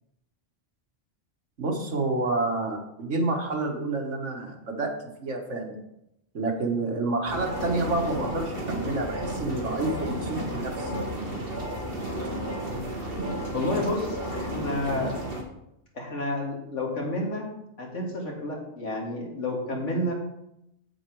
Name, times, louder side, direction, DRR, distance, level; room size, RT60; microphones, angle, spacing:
voice 1, 1.6-4.9 5.2-5.8 6.3-10.9, right 2 dB, 85° right, 1 dB, 1.9 m, -29 dB
sound 1, 7.3-15.4, right 1 dB, 50° right, 1.9 m, -32 dB
voice 2, 13.5-15.2 15.9-17.5 17.8-20.1, left 1 dB, 90° left, 0 dB, 2.3 m, -30 dB
8.0 x 7.6 x 4.7 m, 0.84 s
omnidirectional pair, 1.2 m